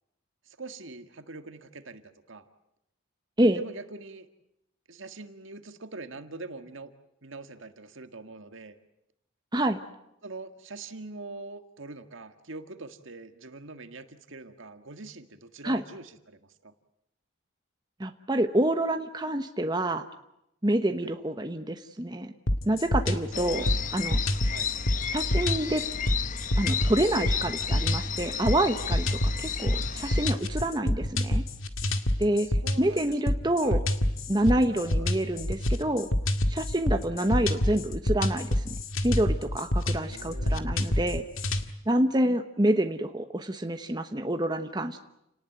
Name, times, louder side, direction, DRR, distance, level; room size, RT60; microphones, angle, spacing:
voice 1, 0.5-2.0 2.3-2.4 3.5-4.3 4.9-6.9 7.2-8.8 10.2-16.7 21.0-21.1 23.3-23.8 24.5-24.7 32.6-33.2 33.6-33.8 34.7-35.1 37.2-37.3 40.1-40.7, right 3 dB, 70° right, 8 dB, 1.8 m, -43 dB
voice 2, 18.0-20.0 20.6-22.3 22.7-23.7 23.9-24.2 25.1-25.8 26.6-31.4 32.2-32.5 32.8-33.8 34.3-36.1 36.5-38.8 39.0-41.2 41.9-45.0, right 1 dB, 20° right, 7 dB, 1.1 m, -27 dB
sound 1, 22.5-41.7, left 1 dB, 80° left, 2.0 m, -27 dB
sound 2, 23.3-30.3, left 7 dB, 40° left, 1.0 m, -33 dB
30.0 x 19.0 x 9.3 m, 0.84 s
head